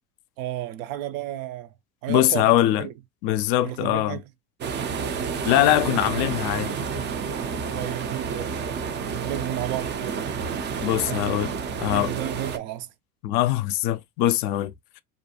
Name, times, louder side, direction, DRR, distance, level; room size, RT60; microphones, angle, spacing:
voice 1, 0.4-1.7 2.0-2.9 3.6-4.2 7.7-8.6 9.0-10.5 11.0-11.4 11.7-12.9, right 13 dB, 65° right, 0.6 m, -33 dB
voice 2, 2.1-2.9 3.2-4.2 5.5-6.7 10.8-11.5 11.8-12.1 13.2-14.7, left 14 dB, 55° left, 0.5 m, -22 dB
sound 1, 4.6-12.6, right 6 dB, 25° right, 0.4 m, -30 dB
2.5 x 2.1 x 2.8 m
hypercardioid pair, 70°, 46 cm